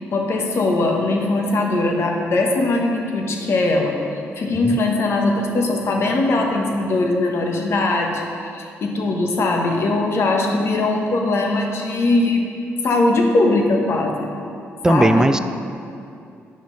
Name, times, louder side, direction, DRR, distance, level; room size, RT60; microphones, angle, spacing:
voice 1, 0.0-4.0 4.4-12.5 12.8-14.3 14.9-15.3, left 2 dB, 55° left, 1 dB, 1.2 m, -20 dB
voice 2, 14.8-15.4, right 2 dB, 10° right, 11 dB, 0.3 m, -16 dB
9.9 x 6.3 x 4.0 m, 2.5 s
cardioid pair, 70°, 5 cm